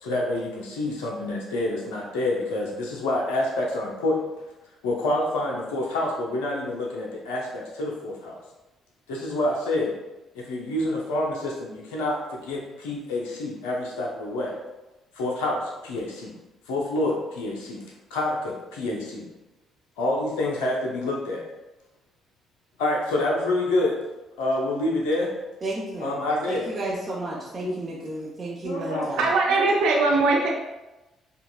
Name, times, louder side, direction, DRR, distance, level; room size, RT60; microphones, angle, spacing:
voice 1, 0.0-4.3 4.8-8.4 9.1-10.0 10.3-14.6 15.1-16.3 16.7-17.8 18.1-19.3 20.0-21.4 22.8-24.0 24.4-25.3 26.0-26.7 27.6-27.8 28.6-29.1 29.5-29.6, left 2 dB, 80° left, -1 dB, 0.5 m, -27 dB
voice 2, 25.6-29.2, right 2 dB, 40° right, -6 dB, 0.7 m, -32 dB
voice 3, 28.7-30.5, right 3 dB, 70° right, -2 dB, 0.5 m, -22 dB
5.3 x 2.2 x 2.3 m, 1.0 s
hypercardioid pair, 50°, 0 cm